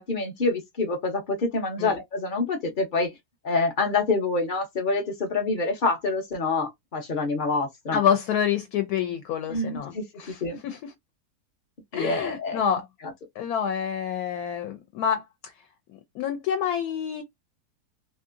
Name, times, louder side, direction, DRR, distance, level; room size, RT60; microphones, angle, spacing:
voice 1, 0.0-3.1 3.4-8.0 9.5-10.6 11.9-12.6, left 3 dB, 45° left, 0.7 m, -27 dB
voice 2, 7.9-10.9 11.9-12.9 13.4-15.2 16.1-17.2, left 8 dB, 75° left, 1.1 m, -27 dB
2.9 x 2.7 x 2.5 m
omnidirectional pair, 1.7 m